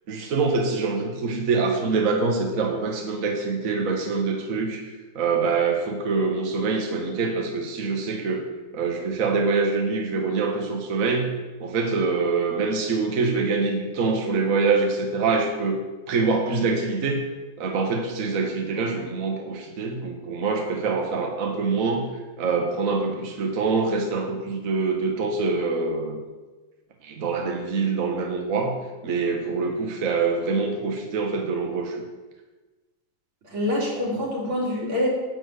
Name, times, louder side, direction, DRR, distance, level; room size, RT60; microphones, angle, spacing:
voice 1, 0.1-4.9 5.1-8.4 8.7-11.3 11.6-17.2 17.6-22.1 22.4-26.2 27.0-28.7 29.0-32.0, right 4 dB, 45° right, 1 dB, 1.4 m, -25 dB
voice 2, 33.4-35.1, left 1 dB, 80° right, -5 dB, 3.8 m, -25 dB
10.5 x 4.4 x 7.9 m, 1.2 s
omnidirectional pair, 2.3 m